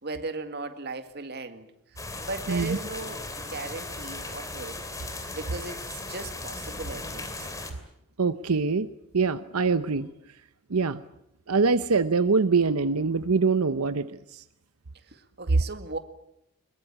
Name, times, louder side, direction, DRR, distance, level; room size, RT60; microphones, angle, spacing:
voice 1, 0.0-1.7 2.2-4.7 5.3-7.5 15.1-16.0, right 3 dB, 50° right, 8 dB, 2.0 m, -37 dB
sound 1, 2.0-7.7, left 2 dB, 15° left, 2.9 m, -37 dB
voice 2, 8.2-8.9 9.1-10.1 10.7-11.0 11.5-14.4, right 4 dB, 85° right, 12 dB, 0.8 m, -24 dB
22.5 x 21.5 x 8.7 m, 0.80 s
head